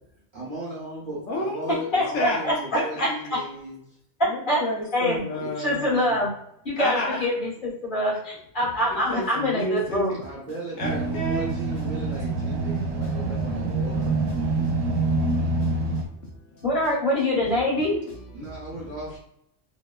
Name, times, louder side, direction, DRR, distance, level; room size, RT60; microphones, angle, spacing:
voice 1, 0.3-3.8 5.4-5.5 10.2-14.3 18.3-19.2, right 1 dB, 40° right, -6 dB, 0.9 m, -37 dB
voice 2, 1.3-2.4 2.7-3.1 4.2-6.1 6.8-7.2 8.9-10.1 10.8-11.5 12.6-12.8 13.0-13.5 14.3-16.2 16.5-16.6 18.1-18.7, left 1 dB, 75° left, -1 dB, 0.9 m, -32 dB
voice 3, 1.9-2.5 3.0-3.1 4.5-4.6 4.9-5.3 5.6-6.3 6.6-10.1 16.6-18.0, left 1 dB, 45° left, -7 dB, 1.3 m, -24 dB
sound 1, 10.8-16.1, right 3 dB, 90° right, 0.9 m, -26 dB
2.9 x 2.1 x 2.2 m, 0.73 s
omnidirectional pair, 1.3 m